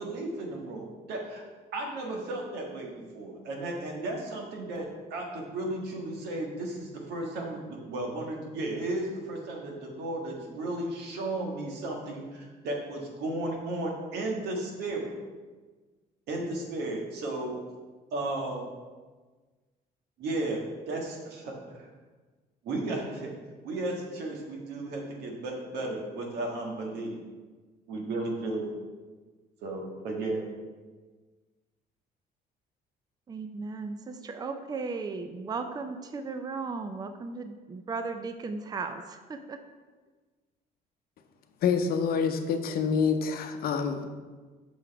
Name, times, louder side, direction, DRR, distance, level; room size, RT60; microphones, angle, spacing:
voice 1, 0.0-1.4 1.7-15.1 16.3-17.5 18.1-18.7 20.2-20.6 20.9-21.9 22.6-23.3 23.6-27.1 27.9-28.7 29.6-30.4, right 2 dB, 80° right, 0 dB, 1.6 m, -34 dB
voice 2, 33.3-39.6, right 4 dB, 25° right, 8 dB, 0.5 m, -36 dB
voice 3, 41.6-44.1, left 6 dB, 60° left, 7 dB, 0.8 m, -27 dB
6.1 x 5.7 x 4.6 m, 1.4 s
cardioid pair, 110°, 17 cm